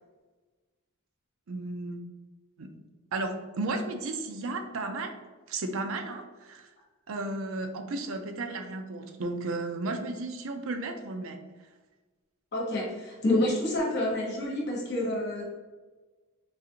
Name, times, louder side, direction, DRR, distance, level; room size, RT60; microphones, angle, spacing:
voice 1, 1.5-2.0 2.6-2.7 3.1-5.1 5.5-6.7 7.1-11.4, right 2 dB, 65° right, 5 dB, 0.5 m, -34 dB
voice 2, 12.5-15.4, left 1 dB, 50° left, -3 dB, 1.1 m, -28 dB
4.0 x 2.5 x 2.8 m, 1.2 s
head